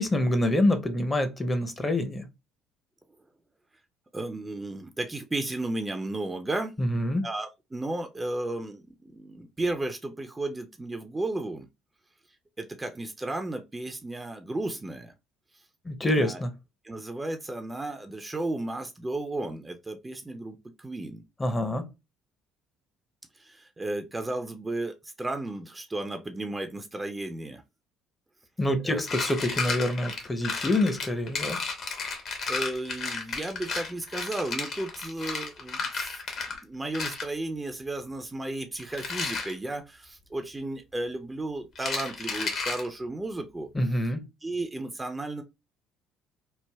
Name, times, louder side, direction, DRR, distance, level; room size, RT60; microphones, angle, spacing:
voice 1, 0.0-2.2 6.8-7.3 15.8-16.5 21.4-21.9 28.6-31.6 43.7-44.2, left 1 dB, 20° left, 0.7 m, -26 dB
voice 2, 4.1-6.7 7.2-11.7 12.6-15.1 16.1-16.4 16.8-21.2 23.4-27.6 28.8-29.0 32.5-36.2 36.5-43.7 44.4-45.4, right 2 dB, 20° right, 0.5 m, -34 dB
sound 1, 29.0-36.6 36.9-37.3 38.8-39.5 41.8-42.9, left 4 dB, 55° left, 0.9 m, -33 dB
3.3 x 2.1 x 2.2 m
hypercardioid pair, 60°, 0 cm